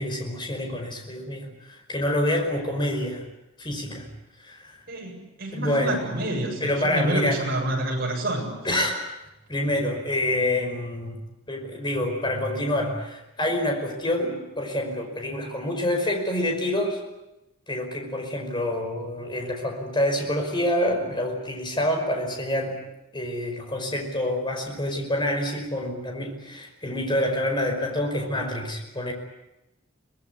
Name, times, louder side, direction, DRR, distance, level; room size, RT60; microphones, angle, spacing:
voice 1, 0.0-3.2 3.6-4.1 4.4-4.7 5.5-6.0 6.6-7.4 8.6-9.0 9.5-11.2 11.5-17.0 17.7-22.8 23.1-29.1, left 1 dB, 25° left, 3 dB, 5.2 m, -27 dB
voice 2, 4.9-8.5, right 1 dB, 50° right, 0 dB, 7.8 m, -28 dB
24.5 x 19.5 x 9.7 m, 0.95 s
head